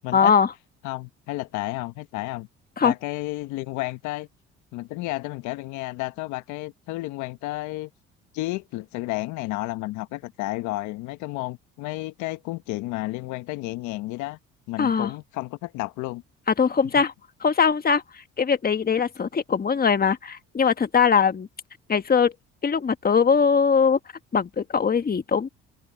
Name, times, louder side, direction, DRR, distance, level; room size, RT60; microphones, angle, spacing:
voice 1, 0.1-0.5 2.8-2.9 14.8-15.1 16.5-17.1 17.4-21.5 21.9-22.3 22.6-24.0 24.3-25.5, left 6 dB, 30° left, 1.6 m, -21 dB
voice 2, 0.8-2.5 2.8-4.3 4.7-7.9 8.3-14.4 14.7-16.2, left 19 dB, 75° left, 1.4 m, -31 dB
supercardioid pair, 65°, 29 cm